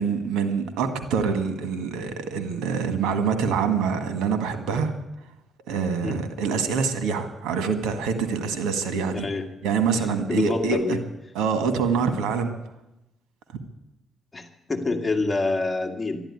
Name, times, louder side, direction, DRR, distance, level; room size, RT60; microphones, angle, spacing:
voice 1, 0.0-4.9 5.7-9.3 9.6-11.0 11.3-12.5 13.5-13.6, right 5 dB, 90° right, 8 dB, 1.8 m, -25 dB
voice 2, 9.1-9.4 9.9-10.0 10.3-11.0 14.3-16.2, left 3 dB, 20° left, 4 dB, 2.1 m, -27 dB
12.5 x 12.0 x 9.8 m, 0.92 s
cardioid pair, 90°, 0 cm